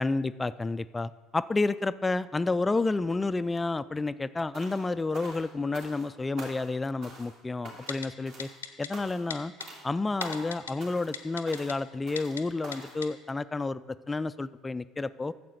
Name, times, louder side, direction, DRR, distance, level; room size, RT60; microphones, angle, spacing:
voice 1, 0.0-8.5 8.8-9.5 9.8-15.3, left 3 dB, 15° left, 15 dB, 0.3 m, -30 dB
sound 1, 4.5-4.9 5.1-6.1 6.4-6.8 7.0-7.4 7.6-8.0 8.3-8.6 8.9-9.3 9.6-9.8 10.2-10.5 10.8-11.2 11.5-11.7 12.1-12.4 12.6-13.0, right 1 dB, 60° right, 2.6 m, -44 dB
Typing, 7.9-8.1 8.4-8.9 9.3-9.7 10.2-10.7 11.1-11.7 12.2-12.4 12.7-12.8 13.0-13.1, left 7 dB, 85° left, 0.6 m, -36 dB
9.3 x 7.4 x 6.6 m, 1.3 s
figure-of-eight pair, 60°, 0 cm